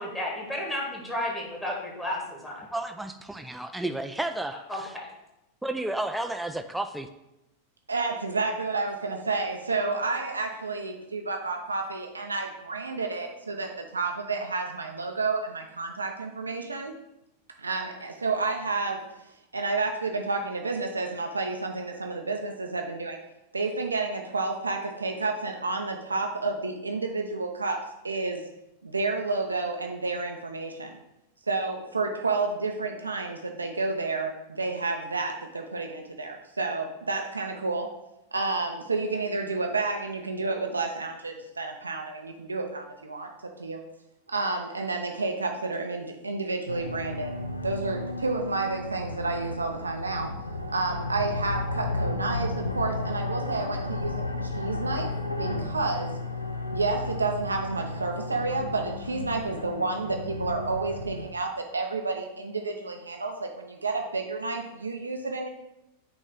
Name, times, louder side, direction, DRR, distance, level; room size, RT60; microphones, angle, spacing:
voice 1, 0.0-2.7 4.7-4.8, left 1 dB, 15° left, -2 dB, 1.8 m, -32 dB
voice 2, 2.7-4.9 5.6-7.1, right 1 dB, 5° right, 7 dB, 0.3 m, -32 dB
voice 3, 7.9-16.9 17.6-19.0 19.5-23.2 23.5-27.8 28.0-28.4 28.8-30.9 31.5-37.9 38.3-43.3 43.6-43.8 44.3-47.3 47.6-50.3 50.7-55.1 55.4-56.2 56.7-65.5, right 3 dB, 80° right, 3 dB, 0.5 m, -30 dB
sound 1, 46.7-61.3, left 2 dB, 85° left, 0.5 m, -33 dB
8.6 x 3.1 x 3.8 m, 0.89 s
figure-of-eight pair, 90°, 0 cm